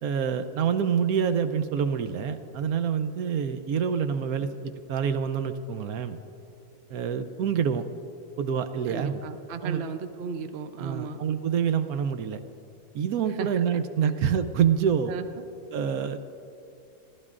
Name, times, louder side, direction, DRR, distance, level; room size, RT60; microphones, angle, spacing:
voice 1, 0.0-4.5 4.9-6.2 6.9-7.8 8.4-9.2 9.6-9.8 10.8-12.4 12.9-15.1 15.7-16.2, right 7 dB, 80° right, 9 dB, 1.1 m, -26 dB
voice 2, 8.9-11.2 13.3-13.6 15.1-15.4, right 5 dB, 55° right, 8 dB, 0.8 m, -35 dB
27.5 x 14.0 x 2.5 m, 2.8 s
omnidirectional pair, 1.6 m